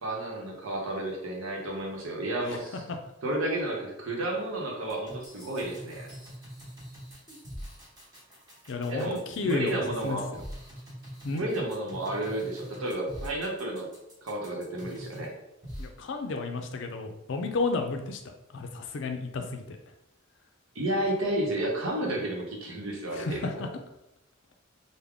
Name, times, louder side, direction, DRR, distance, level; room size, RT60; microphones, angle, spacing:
voice 1, 0.0-2.8 3.2-6.1 8.9-10.3 11.3-13.9 14.2-15.3 20.7-23.6, right 1 dB, 75° right, -1 dB, 0.9 m, -31 dB
sound 1, 4.9-15.3 15.6-15.9, equal, 20° right, 1.0 m, -43 dB
voice 2, 8.7-10.4 11.2-11.4 15.8-19.8 22.1-22.2 23.1-23.7, left 3 dB, 60° left, 5 dB, 0.4 m, -32 dB
3.5 x 2.1 x 3.5 m, 0.89 s
head